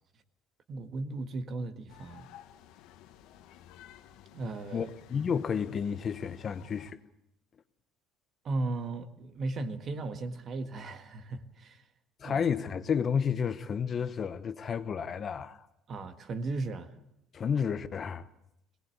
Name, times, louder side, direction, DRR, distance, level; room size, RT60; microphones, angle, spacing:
voice 1, 0.7-2.3 4.3-4.9 8.4-11.8 12.2-12.4 15.9-16.9, right 3 dB, 35° right, 1.6 m, -36 dB
sound 1, 1.9-6.9, left 11 dB, 75° left, 1.5 m, -54 dB
voice 2, 4.7-7.0 12.2-15.6 17.3-18.3, left 7 dB, 30° left, 0.9 m, -31 dB
22.0 x 19.0 x 8.3 m
cardioid pair, 145°, 0 cm